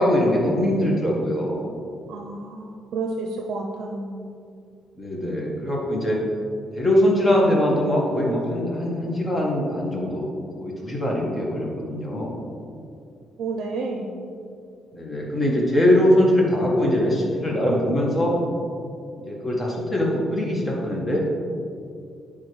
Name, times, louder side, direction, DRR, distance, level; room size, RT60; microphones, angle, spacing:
voice 1, 0.0-1.7 5.0-6.2 6.7-12.4 14.9-18.5 19.3-21.4, left 1 dB, 25° left, -2 dB, 1.5 m, -22 dB
voice 2, 2.1-4.1 13.4-14.1, right 3 dB, 75° right, 1 dB, 0.5 m, -30 dB
9.8 x 3.7 x 3.3 m, 2.4 s
cardioid pair, 90°, 0 cm